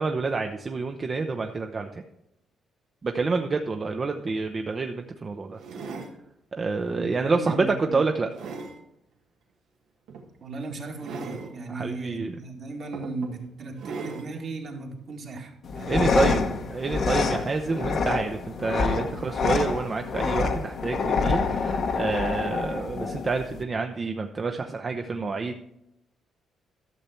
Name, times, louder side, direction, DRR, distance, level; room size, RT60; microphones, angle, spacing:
voice 1, 0.0-2.0 3.0-5.6 6.5-8.3 11.7-12.4 15.9-25.6, right 4 dB, 35° right, 4 dB, 0.7 m, -28 dB
sound 1, 3.9-4.0 4.3-4.5 5.6-6.2 6.8-7.0 7.6-8.8 10.1-10.3 11.0-11.5 12.4-12.5 12.9-13.4 13.8-14.3 15.1-15.2, right 4 dB, 85° right, 1.4 m, -39 dB
voice 2, 6.9-8.0 10.4-16.5 17.8-18.1 19.1-19.3, right 3 dB, 60° right, 0 dB, 2.1 m, -37 dB
sound 2, 15.6-23.6, left 4 dB, 60° left, 1.0 m, -27 dB
12.5 x 6.7 x 4.4 m, 0.84 s
cardioid pair, 90°, 0 cm